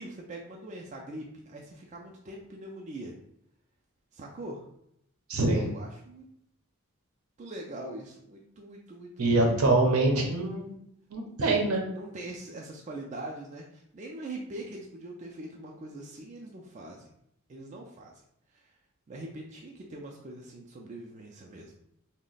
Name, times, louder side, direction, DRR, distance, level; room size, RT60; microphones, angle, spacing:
voice 1, 0.0-3.2 4.1-4.6 5.4-6.3 7.4-9.6 11.2-11.7 11.9-17.1 17.5-18.1 18.5-18.7 19.1-21.7, right 1 dB, 35° right, -1 dB, 0.3 m, -42 dB
voice 2, 5.3-5.7 9.2-10.7 11.1-11.8, right 2 dB, 80° right, 2 dB, 0.7 m, -24 dB
3.0 x 2.1 x 3.9 m, 0.74 s
head